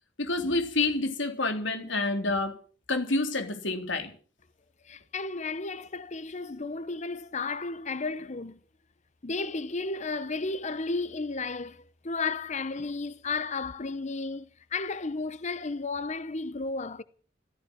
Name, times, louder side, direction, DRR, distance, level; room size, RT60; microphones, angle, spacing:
voice 1, 0.2-2.6 2.9-4.1, left 2 dB, 75° left, 3.6 m, -28 dB
voice 2, 4.8-8.6 9.2-17.0, left 3 dB, 40° left, 0.8 m, -33 dB
15.5 x 15.0 x 6.2 m
head